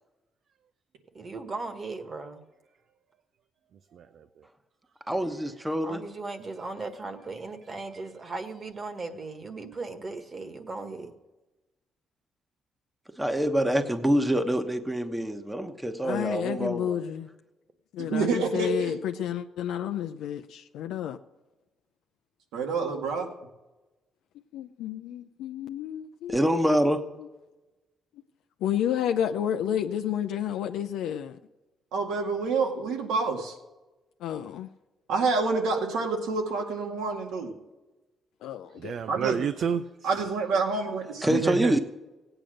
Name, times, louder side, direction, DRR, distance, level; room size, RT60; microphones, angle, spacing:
voice 1, 1.1-2.4 5.8-11.1, right 3 dB, 35° right, 1.5 m, -37 dB
voice 2, 3.9-4.3 7.7-7.8 38.7-40.3 41.3-41.8, right 7 dB, 65° right, 0.5 m, -31 dB
voice 3, 5.1-6.0 13.2-17.0 26.3-27.0 41.2-41.8, equal, 10° right, 1.1 m, -25 dB
voice 4, 16.0-17.3 17.9-21.2 24.5-26.9 27.2-27.3 28.6-31.4 34.2-34.7 38.4-39.0, left 9 dB, 90° left, 0.5 m, -31 dB
voice 5, 18.1-19.0 22.5-23.3 31.9-33.5 35.1-37.5 39.1-39.4 40.0-41.4, right 4 dB, 90° right, 2.1 m, -28 dB
16.5 x 8.9 x 6.4 m
cardioid pair, 90°, 0 cm